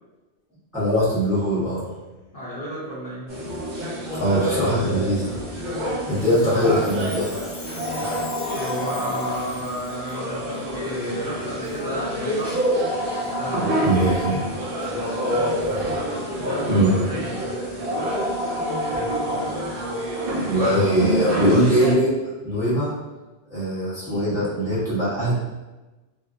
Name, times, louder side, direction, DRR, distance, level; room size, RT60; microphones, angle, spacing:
voice 1, 0.7-1.8 4.2-5.4 6.1-7.3 13.8-14.4 15.6-15.9 16.7-17.0 18.9-19.1 20.4-22.1 22.4-22.9 23.5-25.3, equal, 5° right, -10 dB, 1.0 m, -21 dB
voice 2, 2.3-3.3 6.1-6.3 8.5-12.6 13.0-14.1 16.4-17.5 20.5-20.7, equal, 55° left, -8 dB, 0.7 m, -32 dB
sound 1, 3.3-21.9, equal, 55° right, 0.8 m, -27 dB
Chime, 6.1-10.2 10.9-11.0 11.6-11.8 12.4-12.6 13.2-13.3 14.0-14.1 14.8-14.9, left 3 dB, 90° left, 1.0 m, -42 dB
2.8 x 2.5 x 2.4 m, 1.1 s
omnidirectional pair, 1.2 m